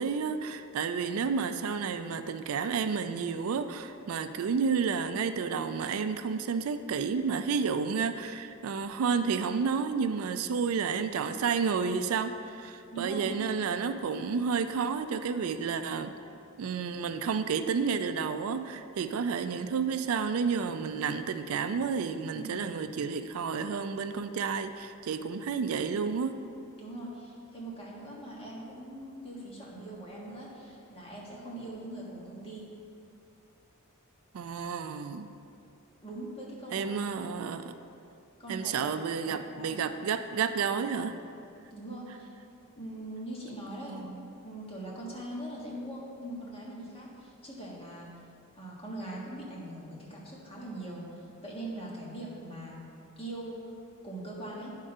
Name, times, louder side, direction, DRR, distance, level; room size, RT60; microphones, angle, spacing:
voice 1, 0.0-16.1 16.6-26.4 34.3-35.3 36.7-37.7 38.5-41.2 43.9-44.3, right 5 dB, 80° right, 9 dB, 0.4 m, -31 dB
voice 2, 12.9-13.4 22.3-22.6 26.8-32.7 36.0-36.9 38.4-39.0 39.2-39.8 41.7-42.3 42.8-44.0 44.4-48.1 48.5-52.8 53.2-53.6 54.0-54.8, right 1 dB, 25° left, -5 dB, 1.6 m, -41 dB
10.0 x 3.7 x 5.4 m, 2.6 s
head